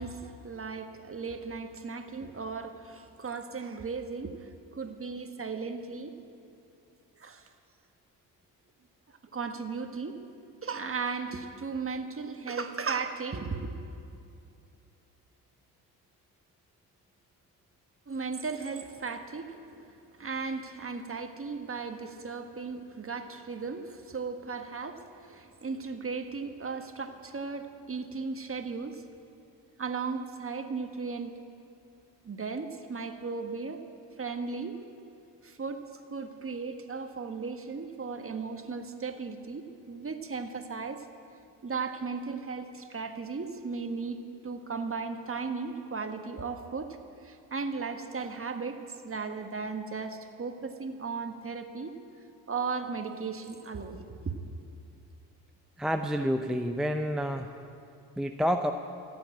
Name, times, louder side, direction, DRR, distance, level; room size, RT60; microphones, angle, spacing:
voice 1, 0.0-6.1 7.2-7.4 9.3-10.2 10.6-13.7 18.1-29.0 29.8-31.3 32.2-33.8 34.2-34.8 35.4-35.8 36.1-41.0 41.6-47.0 47.2-52.0 52.5-54.3, right 4 dB, 30° right, 7 dB, 1.4 m, -36 dB
voice 2, 55.8-57.5 58.2-58.7, equal, ahead, 5 dB, 0.6 m, -28 dB
15.0 x 8.4 x 8.9 m, 2.6 s
hypercardioid pair, 55°, 46 cm